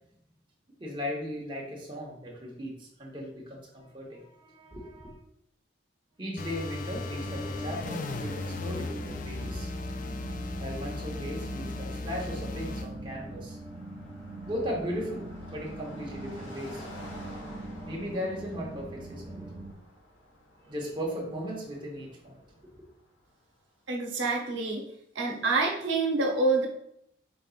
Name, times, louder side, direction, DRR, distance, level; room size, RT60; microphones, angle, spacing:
voice 1, 0.8-5.2 6.2-9.7 10.6-13.6 14.4-16.9 17.8-19.5 20.6-22.6, equal, 25° right, -3 dB, 0.9 m, -37 dB
sound 1, 6.4-12.9, left 2 dB, 40° left, 0.4 m, -37 dB
sound 2, 7.2-19.7, right 1 dB, 55° right, 1.6 m, -42 dB
Car passing by, 12.5-23.6, left 1 dB, 70° left, 1.3 m, -50 dB
voice 2, 23.9-24.8 25.1-26.7, right 3 dB, 75° right, 0 dB, 0.8 m, -27 dB
5.3 x 3.8 x 2.4 m, 0.74 s
head